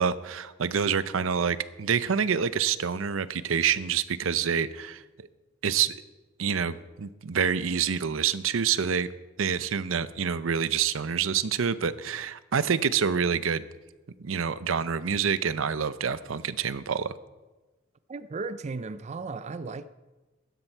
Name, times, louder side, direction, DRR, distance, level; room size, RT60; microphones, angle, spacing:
voice 1, 0.0-5.3 5.6-6.0 6.4-9.1 9.4-13.6 14.2-17.1, right 7 dB, 80° right, 0.6 m, -27 dB
voice 2, 18.1-19.9, right 4 dB, 35° right, 0.4 m, -35 dB
16.0 x 12.0 x 4.5 m
head